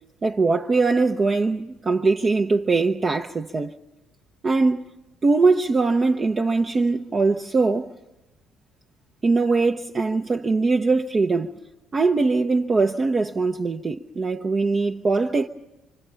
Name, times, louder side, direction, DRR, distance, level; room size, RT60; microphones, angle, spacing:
voice 1, 0.2-3.7 4.4-4.9 5.2-7.9 9.2-11.5 11.9-15.5, right 3 dB, 35° right, 0.7 m, -21 dB
26.0 x 25.0 x 5.6 m
figure-of-eight pair, 50°, 0 cm